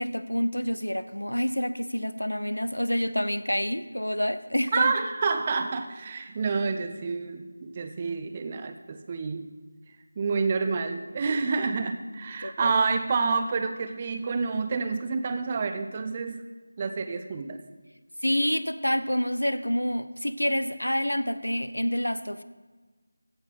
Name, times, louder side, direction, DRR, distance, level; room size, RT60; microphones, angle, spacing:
voice 1, 0.0-4.9 12.4-12.7 18.2-22.4, equal, 85° left, 14 dB, 0.7 m, -28 dB
voice 2, 4.7-9.5 10.2-16.4 16.8-17.6, right 4 dB, 20° right, 8 dB, 0.6 m, -28 dB
15.5 x 5.4 x 6.2 m, 1.3 s
figure-of-eight pair, 165°, 0 cm